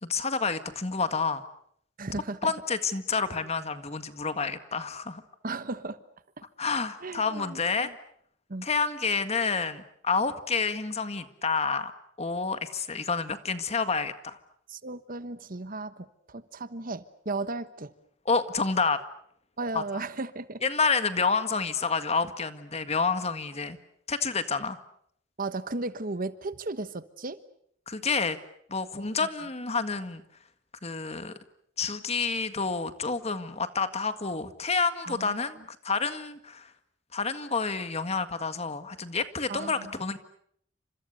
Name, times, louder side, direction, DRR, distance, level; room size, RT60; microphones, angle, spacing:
voice 1, 0.0-1.4 2.4-5.2 6.6-7.9 8.6-11.9 12.2-14.4 18.3-19.0 19.7-19.8 20.6-23.8 24.1-24.8 27.9-28.4 28.7-30.2 30.8-31.3 31.8-36.7 37.1-40.2, left 4 dB, 35° left, 10 dB, 1.8 m, -29 dB
voice 2, 2.0-2.4 5.4-6.0 7.0-7.9 8.5-8.7 14.7-17.9 19.6-20.6 25.4-27.4 29.2-29.3 35.0-35.3 39.5-39.9, right 3 dB, 45° right, 13 dB, 1.3 m, -35 dB
30.0 x 27.0 x 6.6 m, 0.67 s
head